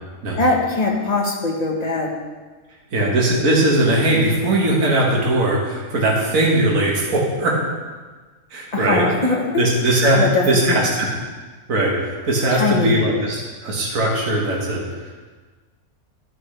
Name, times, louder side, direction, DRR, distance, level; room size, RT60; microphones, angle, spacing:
voice 1, 0.4-2.1 8.7-9.6 10.2-10.8 12.5-13.1, left 3 dB, 30° left, 0 dB, 1.2 m, -21 dB
voice 2, 2.9-7.6 8.5-9.1 9.6-10.2 10.5-11.1 11.7-15.1, right 1 dB, 65° right, -3 dB, 1.9 m, -19 dB
11.0 x 8.9 x 3.3 m, 1.4 s
omnidirectional pair, 1.6 m